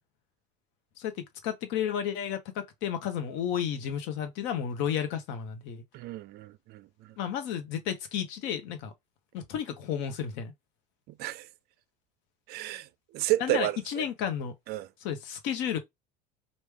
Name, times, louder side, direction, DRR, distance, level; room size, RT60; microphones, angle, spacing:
voice 1, 1.0-5.8 7.2-8.9 9.3-10.5 13.4-14.5 15.0-15.8, left 9 dB, 60° left, 1.1 m, -32 dB
voice 2, 5.9-7.1 11.2-11.5 12.5-12.9 13.1-14.0 14.7-14.9, right 15 dB, 50° right, 0.4 m, -31 dB
3.2 x 2.6 x 3.5 m
hypercardioid pair, 90°, 21 cm